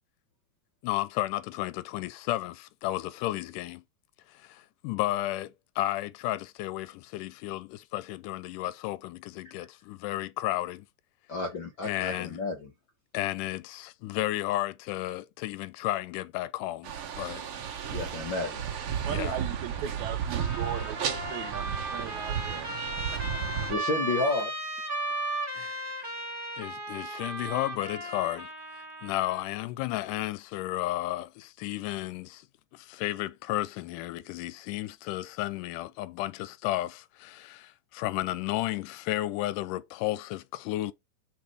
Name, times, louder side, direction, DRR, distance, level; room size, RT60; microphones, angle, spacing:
voice 1, 0.8-3.8 4.3-10.9 11.8-12.4 13.1-17.4 19.1-19.4 25.5-26.2 26.6-28.5 28.7-32.5 32.7-40.9, left 16 dB, 80° left, 2.0 m, -33 dB
voice 2, 11.3-12.7 17.9-18.6 23.7-24.5, left 3 dB, 60° left, 1.2 m, -31 dB
sound 1, 16.8-23.8, right 8 dB, 55° right, 1.6 m, -33 dB
voice 3, 18.8-22.7 23.1-23.4, right 10 dB, 75° right, 1.8 m, -38 dB
Trumpet, 20.3-29.5, right 1 dB, 10° right, 1.6 m, -36 dB
5.9 x 4.1 x 4.8 m
omnidirectional pair, 3.8 m